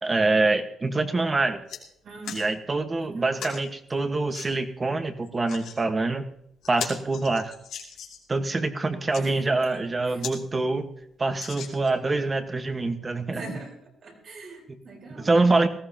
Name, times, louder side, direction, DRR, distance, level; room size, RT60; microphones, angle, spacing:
voice 1, 0.0-1.6 2.3-6.3 6.7-7.5 8.3-10.9 11.2-13.6 15.2-15.7, right 3 dB, 25° right, 7 dB, 1.4 m, -25 dB
sound 1, 1.0-1.1 1.4-1.8 2.2-2.5 3.4-3.6 4.3-4.5 5.3-5.8 6.2-6.3 6.6-8.3 8.9-9.2 9.8-9.9 10.2-10.4 10.7-10.8 11.3-12.1 12.7-12.8, left 8 dB, 80° left, 2.7 m, -38 dB
voice 2, 2.0-2.4 2.9-3.4 9.1-10.2 13.3-13.7 14.0-15.4, right 3 dB, 55° right, 0 dB, 4.3 m, -43 dB
18.5 x 15.0 x 2.9 m, 0.70 s
cardioid pair, 90°, 0 cm